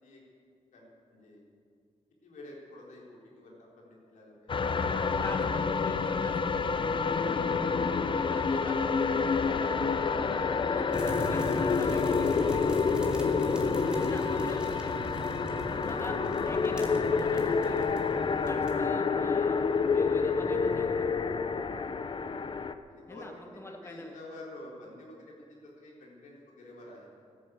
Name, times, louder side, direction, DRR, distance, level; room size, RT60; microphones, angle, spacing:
voice 1, 0.7-1.4 2.2-4.5 5.0-5.8 15.6-15.8 21.8-22.0 22.9-25.5 25.8-27.1, left 1 dB, 90° left, -3 dB, 4.0 m, -50 dB
sound 1, 4.5-22.7, left 5 dB, 40° left, 0.7 m, -28 dB
voice 2, 5.2-6.7 8.2-8.7 10.2-12.8 14.0-15.1 15.4-16.2 16.4-17.9 18.4-21.2 23.1-24.1, left 2 dB, 20° left, 3 dB, 1.4 m, -45 dB
sound 2, 10.9-18.9, equal, 5° right, 2.6 m, -39 dB
13.5 x 11.0 x 8.3 m, 2.3 s
cardioid pair, 85°, 13 cm